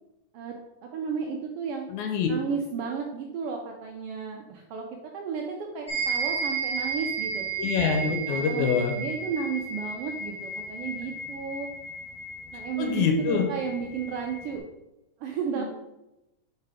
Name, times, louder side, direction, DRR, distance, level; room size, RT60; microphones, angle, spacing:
voice 1, 0.8-1.9 2.3-4.9 5.1-7.5 8.3-11.7 12.5-14.6 15.2-15.6, right 6 dB, 90° right, 1 dB, 1.3 m, -33 dB
voice 2, 1.9-2.3 7.6-9.0 12.8-13.5 15.6-15.7, left 6 dB, 85° left, 3 dB, 2.2 m, -25 dB
sound 1, 5.9-14.6, right 4 dB, 30° right, 0.5 m, -33 dB
4.8 x 4.5 x 4.8 m, 0.94 s
omnidirectional pair, 3.4 m